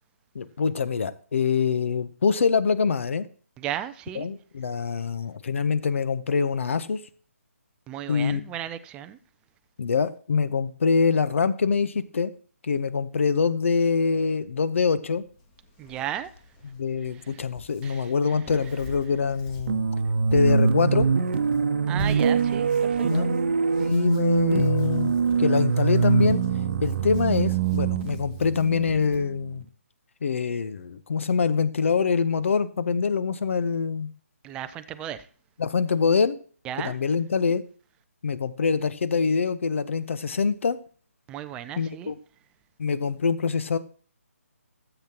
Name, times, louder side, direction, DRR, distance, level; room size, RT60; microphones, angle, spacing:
voice 1, 0.3-3.3 4.1-7.0 8.1-8.4 9.8-12.3 12.6-15.2 16.6-19.9 20.3-21.1 23.0-23.4 23.8-25.1 25.4-26.4 26.8-29.6 30.2-34.1 35.6-36.4 36.8-37.6 38.2-40.8 41.8-42.2 42.8-43.8, left 5 dB, 55° left, 0.9 m, -24 dB
voice 2, 3.6-4.3 7.9-9.2 15.8-16.3 17.1-17.4 17.8-18.7 21.9-23.3 34.4-35.3 36.6-37.0 41.3-42.1, right 11 dB, 10° right, 0.4 m, -35 dB
Hands, 15.1-29.2, left 3 dB, 20° left, 1.9 m, -45 dB
sound 1, 19.7-29.5, right 5 dB, 50° right, 0.9 m, -24 dB
13.5 x 8.0 x 2.9 m
figure-of-eight pair, 150°, 8 cm